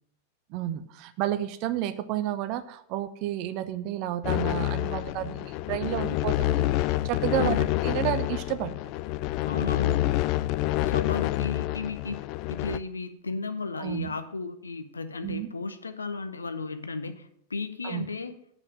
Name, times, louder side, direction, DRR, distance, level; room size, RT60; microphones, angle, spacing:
voice 1, 0.5-6.7 7.0-8.8 13.8-14.1 15.2-15.5 17.8-18.1, right 12 dB, 45° right, 13 dB, 0.7 m, -31 dB
sound 1, 4.2-12.8, left 16 dB, 40° left, 0.3 m, -27 dB
voice 2, 7.3-7.7 9.5-10.2 10.8-12.2 12.5-18.4, left 4 dB, 75° left, 10 dB, 0.7 m, -34 dB
8.3 x 5.3 x 7.3 m, 0.68 s
figure-of-eight pair, 90°, 0 cm